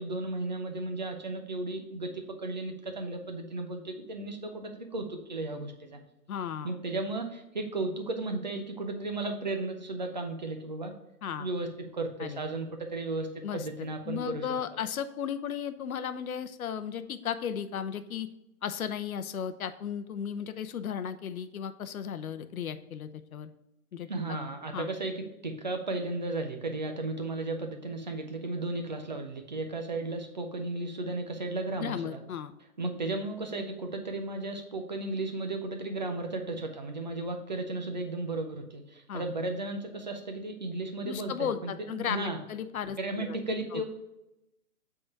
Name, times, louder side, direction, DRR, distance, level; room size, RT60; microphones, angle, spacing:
voice 1, 0.0-6.0 6.6-10.9 11.4-11.7 11.9-14.5 24.1-25.2 25.4-32.2 32.8-42.4 43.0-43.8, right 2 dB, 30° right, 5 dB, 0.5 m, -34 dB
voice 2, 6.3-6.7 11.2-11.5 12.2-12.4 13.4-13.7 14.1-18.3 18.6-23.5 23.9-24.4 24.7-24.9 31.8-32.5 39.1-39.2 41.0-43.3 43.7-43.8, left 8 dB, 65° left, 11 dB, 0.7 m, -35 dB
7.8 x 3.8 x 4.6 m, 0.89 s
hypercardioid pair, 175°, 46 cm